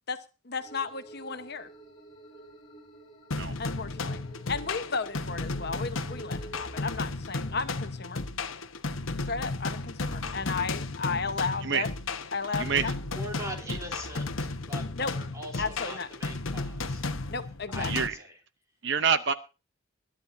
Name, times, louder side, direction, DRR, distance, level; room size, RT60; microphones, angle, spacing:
voice 1, 0.4-1.7 3.6-4.2 4.5-8.2 9.3-11.9 12.3-12.9 15.0-15.1 15.6-16.1 17.3-17.9, left 4 dB, 50° left, 8 dB, 1.1 m, -34 dB
sound 1, 0.6-6.9, right 2 dB, 25° left, 3.3 m, -50 dB
sound 2, 3.3-18.1, left 3 dB, 70° left, 1.1 m, -34 dB
voice 2, 12.6-12.9 13.7-13.8 17.8-18.1 18.8-19.3, right 6 dB, 55° right, 12 dB, 0.7 m, -27 dB
voice 3, 13.1-17.1 17.7-18.3, equal, 15° right, 2 dB, 3.3 m, -42 dB
21.5 x 11.5 x 2.7 m, 0.31 s
head